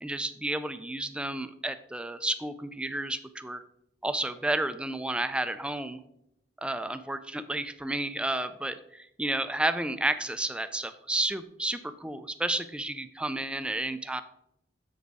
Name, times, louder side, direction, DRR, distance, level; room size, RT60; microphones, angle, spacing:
voice 1, 0.0-3.6 4.0-6.0 6.6-14.2, right 1 dB, 5° right, 10 dB, 0.4 m, -31 dB
7.9 x 5.1 x 4.8 m, 0.78 s
head